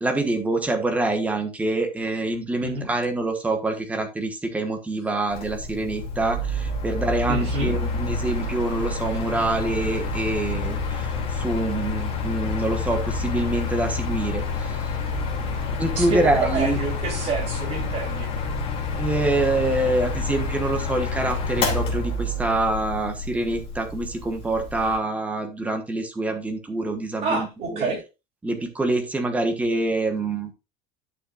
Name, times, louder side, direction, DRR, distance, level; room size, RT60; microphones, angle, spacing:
voice 1, 0.0-14.7 15.8-16.8 19.0-27.9 28.4-30.5, right 2 dB, 10° right, 1.3 m, -26 dB
Mechanical fan, 5.3-25.0, left 3 dB, 30° left, 2.7 m, -28 dB
voice 2, 7.3-7.8 16.0-18.3 27.2-28.0, right 3 dB, 35° right, 3.4 m, -27 dB
11.0 x 6.7 x 2.5 m
cardioid pair, 175°, 18 cm